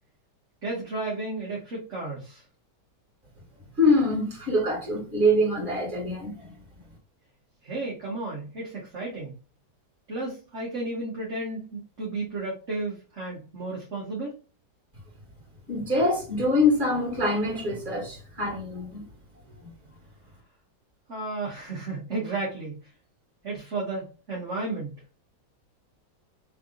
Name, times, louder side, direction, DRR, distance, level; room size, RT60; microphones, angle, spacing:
voice 1, 0.6-2.4 7.6-9.3 10.1-14.3 21.1-22.7 23.4-24.9, right 2 dB, 50° right, 1.6 m, -33 dB
voice 2, 3.8-6.5 15.7-19.1 19.6-19.7, left 1 dB, 30° right, 2.3 m, -24 dB
3.8 x 3.4 x 3.7 m
omnidirectional pair, 1.8 m